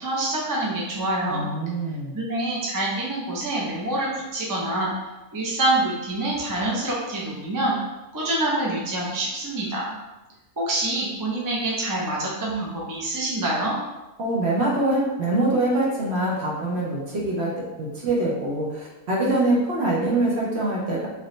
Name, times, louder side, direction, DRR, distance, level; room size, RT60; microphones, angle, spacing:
voice 1, 0.0-1.5 2.1-4.9 5.3-7.8 8.1-9.9 10.6-13.8, right 2 dB, 25° right, -4 dB, 0.4 m, -26 dB
voice 2, 1.3-2.2 14.2-21.1, right 2 dB, 50° right, -4 dB, 1.0 m, -24 dB
4.5 x 2.7 x 3.1 m, 1.1 s
omnidirectional pair, 1.6 m